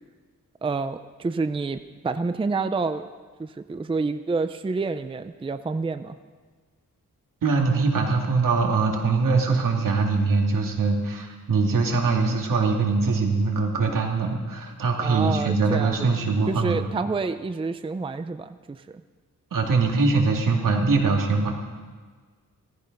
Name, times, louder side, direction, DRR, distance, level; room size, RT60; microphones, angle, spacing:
voice 1, 0.6-1.8 2.0-3.1 3.4-6.2 15.0-19.0, right 4 dB, 15° right, 10 dB, 0.5 m, -28 dB
voice 2, 7.4-16.8 19.5-21.5, right 4 dB, 75° right, 1 dB, 2.5 m, -22 dB
17.0 x 14.5 x 5.3 m, 1.5 s
wide cardioid pair, 115°, 32 cm